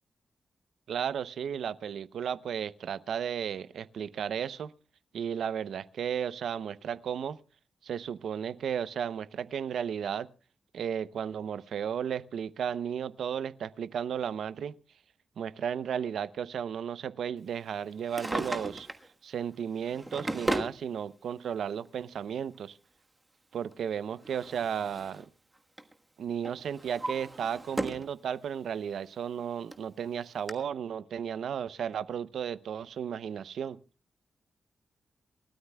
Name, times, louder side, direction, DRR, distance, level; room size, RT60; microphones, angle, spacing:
voice 1, 0.9-4.7 5.1-7.4 7.8-10.3 10.7-14.7 15.4-18.9 19.2-22.8 23.5-25.3 26.2-33.8, right 8 dB, 90° right, 0.7 m, -34 dB
Drawer open or close, 17.9-19.1 19.8-20.8 21.9-22.0 23.7-25.3 25.6-25.9 26.4-28.1 28.5-28.6 29.4-29.5 29.7-29.8 30.5-30.6, right 2 dB, 15° right, 1.3 m, -35 dB
28.5 x 13.0 x 2.3 m
wide cardioid pair, 160°, 0 cm